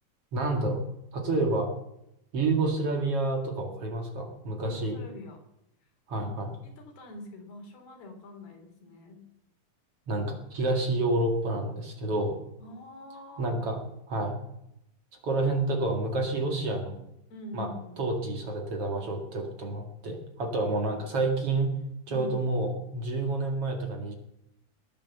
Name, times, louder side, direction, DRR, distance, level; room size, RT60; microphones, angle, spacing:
voice 1, 0.3-0.8 1.1-1.7 2.3-5.0 6.1-6.5 10.1-12.4 13.4-13.8 14.1-14.4 15.2-17.0 17.5-17.7 18.0-21.7 22.1-24.1, right 2 dB, 45° right, 3 dB, 2.5 m, -29 dB
voice 2, 4.6-5.4 6.1-6.3 6.6-9.2 12.6-13.6 17.3-18.0 20.7-20.9 22.1-22.4, left 2 dB, 90° left, 3 dB, 5.4 m, -44 dB
20.5 x 8.9 x 7.0 m, 0.81 s
omnidirectional pair, 4.4 m